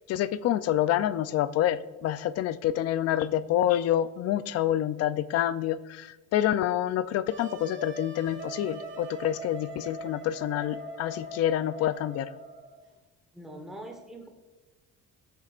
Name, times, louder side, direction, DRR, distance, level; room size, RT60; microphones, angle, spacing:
voice 1, 0.1-12.3, left 11 dB, 55° left, 14 dB, 0.5 m, -27 dB
Wind instrument woodwind instrument, 7.3-12.8, right 1 dB, 40° right, 1.6 m, -41 dB
voice 2, 13.3-14.3, right 1 dB, ahead, 1 dB, 1.2 m, -42 dB
20.0 x 7.9 x 2.5 m, 1.2 s
cardioid pair, 155°, 30 cm